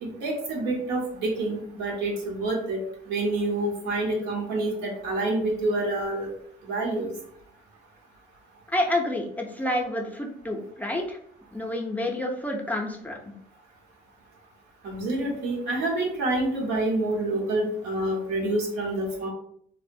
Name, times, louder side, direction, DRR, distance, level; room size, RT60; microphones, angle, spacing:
voice 1, 0.0-2.8 3.1-6.3 6.7-7.1 14.8-19.3, right 2 dB, 85° right, -1 dB, 0.9 m, -27 dB
voice 2, 8.7-11.2 11.5-13.2, left 1 dB, 10° left, 1 dB, 0.4 m, -29 dB
2.9 x 2.0 x 2.6 m, 0.67 s
cardioid pair, 110°, 17 cm